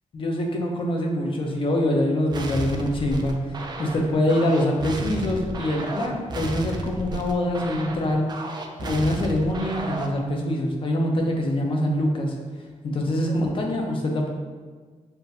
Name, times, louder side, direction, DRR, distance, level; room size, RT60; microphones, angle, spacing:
voice 1, 0.1-3.4 3.8-8.3 8.8-12.3 12.8-14.3, left 1 dB, 40° left, 1 dB, 0.6 m, -24 dB
sound 1, 2.3-10.3, right 2 dB, 35° right, 0.4 m, -32 dB
6.6 x 2.6 x 2.6 m, 1.5 s
wide cardioid pair, 175°, 13 cm